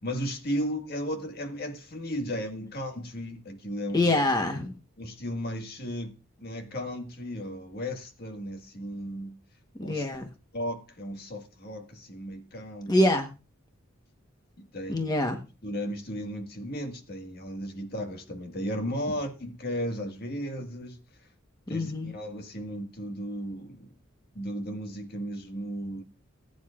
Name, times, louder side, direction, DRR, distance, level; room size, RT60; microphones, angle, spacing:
voice 1, 0.0-4.1 5.0-9.4 9.8-10.1 10.5-12.9 14.6-15.1 15.6-21.0 21.7-23.9 24.3-26.0, equal, 50° left, 1.7 m, -35 dB
voice 2, 3.9-4.7 9.8-10.2 12.9-13.3 14.9-15.4 21.7-22.1, left 1 dB, 20° left, 1.1 m, -25 dB
20.0 x 9.5 x 2.4 m
head